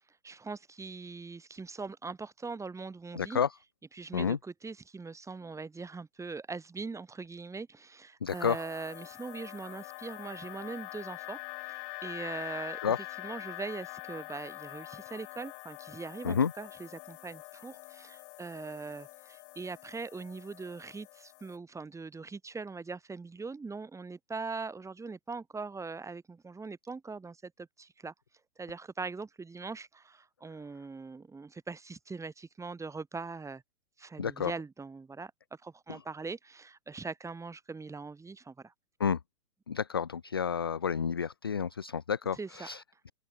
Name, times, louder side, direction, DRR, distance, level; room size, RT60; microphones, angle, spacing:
voice 1, 0.2-3.4 3.9-11.4 11.6-12.8 13.2-28.1 28.6-33.6 34.0-38.7 42.4-42.7, right 4 dB, 5° right, 2.6 m, -41 dB
voice 2, 3.1-3.5 4.1-4.4 8.2-8.6 12.8-13.0 16.2-16.5 34.2-34.5 35.9-36.0 39.0-39.2 39.7-43.1, left 7 dB, 20° left, 0.3 m, -30 dB
sound 1, 8.3-21.6, left 36 dB, 35° left, 5.1 m, -45 dB
open air
hypercardioid pair, 145°, 45 cm